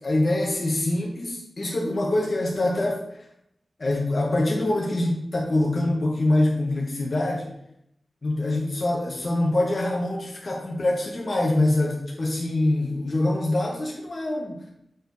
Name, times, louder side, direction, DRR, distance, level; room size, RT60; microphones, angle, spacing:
voice 1, 0.0-3.0 3.8-7.5 8.2-14.6, left 1 dB, 45° left, -2 dB, 1.1 m, -24 dB
6.6 x 4.6 x 4.0 m, 0.77 s
wide cardioid pair, 110°, 0 cm